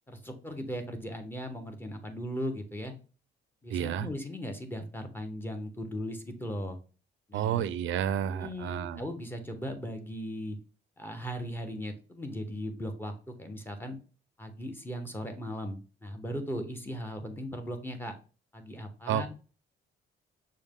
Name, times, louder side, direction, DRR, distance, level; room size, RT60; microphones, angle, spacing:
voice 1, 0.1-2.9 3.6-6.8 7.3-7.7 8.2-10.6 11.0-14.0 14.4-18.1 18.5-19.3, equal, 10° left, 0.9 m, -38 dB
voice 2, 3.7-4.1 7.3-9.0 19.1-19.3, right 9 dB, 75° right, 0.4 m, -30 dB
6.3 x 2.2 x 3.5 m
cardioid pair, 90°, 20 cm